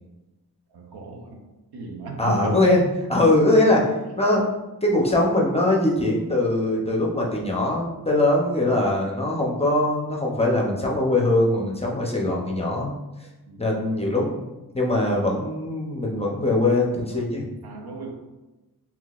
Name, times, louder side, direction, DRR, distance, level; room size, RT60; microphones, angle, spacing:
voice 1, 0.7-1.5 1.7-2.7 11.8-12.1 13.5-13.8 17.6-18.1, right 3 dB, 80° right, 2 dB, 0.7 m, -36 dB
voice 2, 2.2-2.8 3.1-3.9 4.2-4.4 4.8-12.9 13.6-14.5 14.7-17.4, left 1 dB, 15° left, -2 dB, 0.6 m, -21 dB
3.7 x 2.9 x 2.4 m, 1.0 s
cardioid pair, 75°, 38 cm